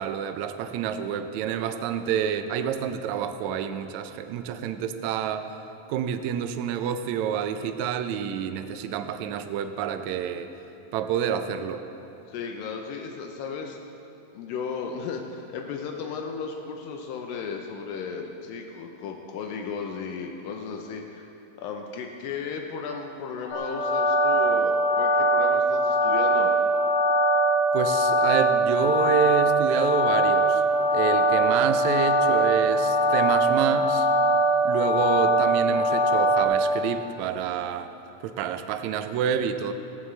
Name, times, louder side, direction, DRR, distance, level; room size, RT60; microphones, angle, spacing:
voice 1, 0.0-5.5 5.9-10.5 10.9-11.9 27.7-30.6 30.9-34.1 34.6-37.9 38.2-39.7, right 8 dB, 80° right, 8 dB, 1.6 m, -28 dB
voice 2, 12.3-13.8 14.3-21.3 21.6-26.5, left 5 dB, 85° left, 2 dB, 2.5 m, -35 dB
sound 1, 23.5-36.4, right 1 dB, 70° left, 2.5 m, -22 dB
16.5 x 15.5 x 3.2 m, 2.8 s
omnidirectional pair, 3.9 m